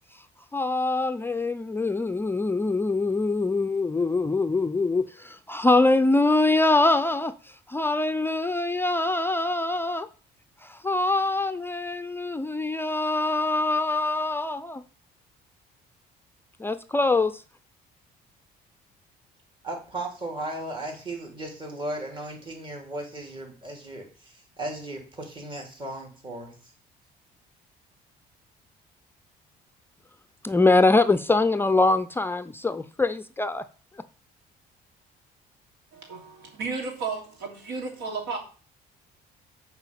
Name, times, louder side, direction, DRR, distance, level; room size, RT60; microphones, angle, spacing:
voice 1, 0.5-7.3 7.7-10.1 10.6-14.8 16.6-17.4 30.4-33.6, left 2 dB, 15° left, 0.4 m, -23 dB
voice 2, 19.6-26.7, right 1 dB, 30° right, 3.5 m, -36 dB
voice 3, 35.9-38.4, right 4 dB, 85° right, 3.1 m, -33 dB
8.0 x 4.8 x 7.4 m
cardioid pair, 110°, 17 cm